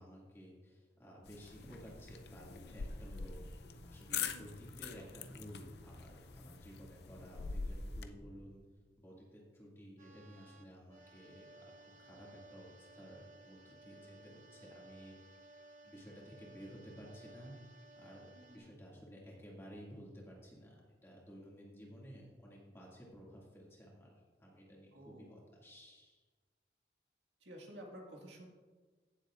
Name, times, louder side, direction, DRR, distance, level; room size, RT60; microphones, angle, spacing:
voice 1, 0.0-8.6 9.0-15.1 15.8-17.5 18.0-20.8 21.0-24.1 24.4-26.2, equal, 15° left, -4 dB, 2.1 m, -54 dB
sound 1, 1.2-8.0, left 5 dB, 60° left, 0.5 m, -44 dB
sound 2, 2.1-7.4, left 1 dB, 25° right, 2.7 m, -60 dB
sound 3, 10.0-18.6, right 2 dB, 45° right, 0.9 m, -59 dB
voice 2, 18.3-18.8 24.9-25.5 27.4-28.5, right 1 dB, 80° right, 0 dB, 1.9 m, -52 dB
16.5 x 7.4 x 2.5 m, 1.4 s
head